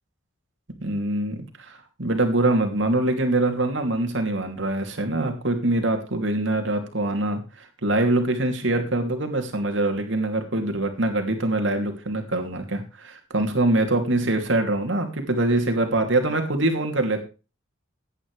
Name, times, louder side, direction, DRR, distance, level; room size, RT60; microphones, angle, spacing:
voice 1, 0.8-17.2, right 2 dB, 65° right, 5 dB, 2.9 m, -24 dB
16.0 x 9.8 x 3.3 m, 0.32 s
head